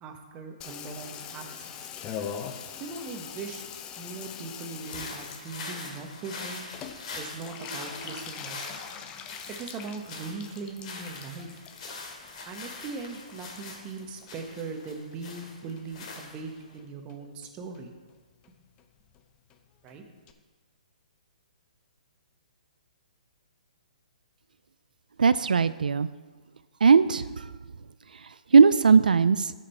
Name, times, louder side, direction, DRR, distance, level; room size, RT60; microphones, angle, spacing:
voice 1, 0.0-1.9 2.8-3.7 4.0-6.6 7.1-8.6 9.5-11.6 12.5-17.9 19.8-20.0, right 4 dB, 25° right, 4 dB, 1.1 m, -40 dB
Water tap faucet / Bathtub (filling or washing), 0.6-15.2 15.4-16.2 16.5-16.6 16.8-16.9 17.1-17.5 17.8-17.9 18.1-18.2 18.4-18.5 18.8-18.9 19.1-19.2 19.5-19.6 19.9-20.0 20.3-20.4, left 8 dB, 20° left, 0.6 m, -43 dB
sound 1, 4.8-16.7, left 3 dB, 45° left, 2.6 m, -43 dB
Vehicle horn car horn honking, 7.5-8.3, right 1 dB, 90° left, 2.2 m, -45 dB
voice 2, 25.2-26.1 26.8-27.5 28.2-29.5, right 5 dB, 90° right, 14 dB, 0.3 m, -19 dB
13.5 x 5.0 x 4.4 m, 1.4 s
hypercardioid pair, 145°, 4 cm